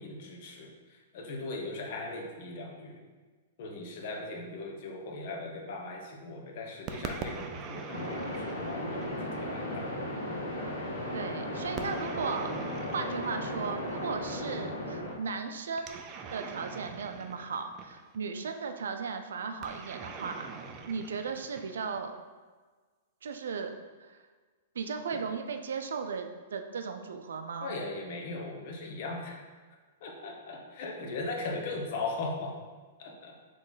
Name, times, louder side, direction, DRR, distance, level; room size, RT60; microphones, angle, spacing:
voice 1, 0.0-3.0 3.6-9.9 27.6-29.4 30.0-32.6 33.0-33.4, left 2 dB, 50° left, 1 dB, 0.8 m, -39 dB
sound 1, 6.9-9.5 11.8-14.1 15.8-18.2 19.6-22.1, right 5 dB, 30° right, 0.4 m, -43 dB
sound 2, 7.9-15.1, left 1 dB, 80° left, 1.5 m, -36 dB
voice 2, 11.1-12.5 12.9-16.0 16.3-20.5 20.9-22.1 23.2-23.7 24.0-24.2 24.7-27.7, right 5 dB, 85° right, 7 dB, 0.4 m, -36 dB
4.0 x 3.1 x 3.9 m, 1.4 s
hypercardioid pair, 150°, 0 cm